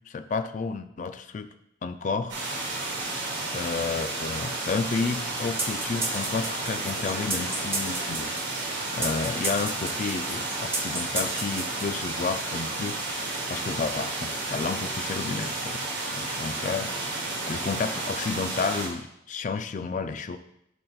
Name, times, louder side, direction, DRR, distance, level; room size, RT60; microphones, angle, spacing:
voice 1, 0.1-1.5 1.8-2.4 3.5-8.3 8.9-13.0 13.5-20.4, left 4 dB, 40° left, 9 dB, 0.3 m, -31 dB
sound 1, 2.3-18.9, right 2 dB, 65° right, 1.7 m, -32 dB
sound 2, 5.6-12.3, right 2 dB, 10° right, 0.5 m, -33 dB
sound 3, 6.0-8.3, left 1 dB, 60° left, 1.5 m, -44 dB
10.5 x 4.1 x 2.3 m, 0.80 s
head